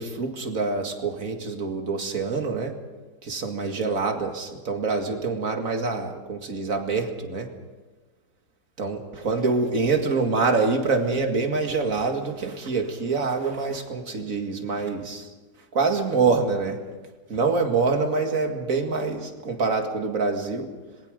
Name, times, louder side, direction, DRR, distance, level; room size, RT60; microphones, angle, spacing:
voice 1, 0.0-2.8 3.2-7.5 8.8-15.3 15.7-16.8 17.3-20.7, right 4 dB, 45° right, 4 dB, 2.4 m, -25 dB
26.5 x 20.5 x 5.2 m, 1.3 s
omnidirectional pair, 2.0 m